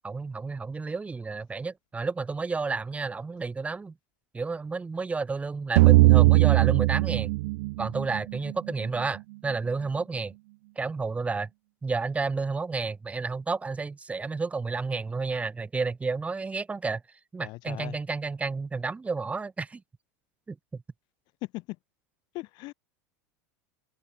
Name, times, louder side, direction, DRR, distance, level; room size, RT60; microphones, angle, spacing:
voice 1, 0.0-3.9 4.3-7.3 7.8-10.3 10.8-11.5 11.8-17.0 17.3-19.8 20.5-20.6, right 4 dB, 15° right, 2.1 m, -31 dB
sound 1, 5.8-8.7, right 23 dB, 65° right, 0.5 m, -19 dB
voice 2, 17.4-18.0 21.4-21.8 22.3-22.7, left 22 dB, 55° left, 7.1 m, -38 dB
hypercardioid pair, 110°, 9 cm